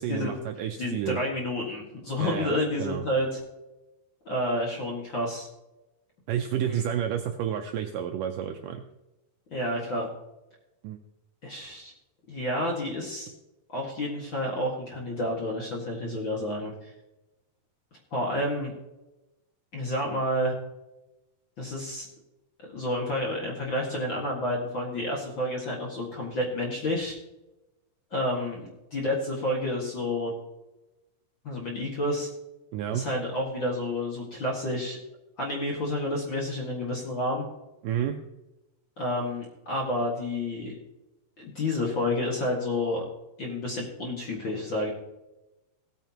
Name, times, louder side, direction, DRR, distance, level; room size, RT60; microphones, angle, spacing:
voice 1, 0.0-1.2 2.2-2.5 2.8-3.0 6.3-8.8 10.8-11.0 32.7-33.1 37.8-38.2, right 9 dB, 80° right, 5 dB, 2.0 m, -30 dB
voice 2, 0.8-3.4 4.2-5.5 6.6-6.8 9.5-10.1 11.4-11.9 12.3-13.3 13.7-16.9 18.1-18.7 19.7-20.5 21.6-22.1 22.7-27.1 28.1-30.3 31.4-32.3 32.9-35.0 35.4-37.4 39.0-40.7 41.4-43.0 43.4-44.9, left 1 dB, 40° left, -2 dB, 1.8 m, -30 dB
17.0 x 9.1 x 2.9 m, 1.0 s
omnidirectional pair, 4.4 m